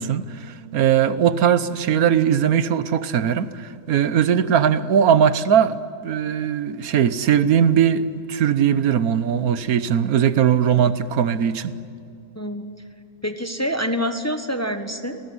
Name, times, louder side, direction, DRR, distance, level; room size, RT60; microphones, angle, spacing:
voice 1, 0.0-11.7, right 8 dB, 80° right, 1.4 m, -20 dB
voice 2, 12.3-12.6 13.2-15.2, equal, 10° left, 1.2 m, -26 dB
29.0 x 19.5 x 9.6 m
omnidirectional pair, 1.5 m